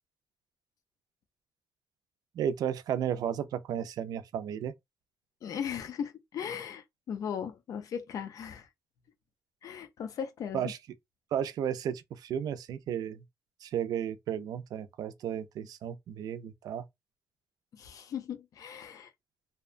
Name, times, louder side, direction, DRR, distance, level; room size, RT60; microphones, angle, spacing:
voice 1, 2.4-4.7 10.5-10.8 11.3-13.2 13.6-16.8, right 9 dB, 80° right, 0.4 m, -33 dB
voice 2, 5.4-8.7 9.6-10.7 17.7-19.1, left 8 dB, 65° left, 0.5 m, -38 dB
2.7 x 2.1 x 2.4 m
wide cardioid pair, 175°, 6 cm